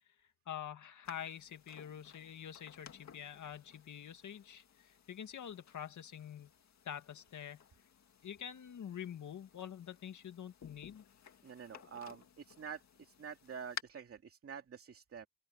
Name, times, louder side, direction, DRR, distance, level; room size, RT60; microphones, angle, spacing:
voice 1, 0.5-6.5 6.9-7.6 8.2-11.0, left 9 dB, 85° left, 2.1 m, -46 dB
sound 1, 1.1-13.8, left 7 dB, 65° left, 2.1 m, -55 dB
voice 2, 11.4-15.3, right 7 dB, 50° right, 2.5 m, -48 dB
open air
wide cardioid pair, 175°, 29 cm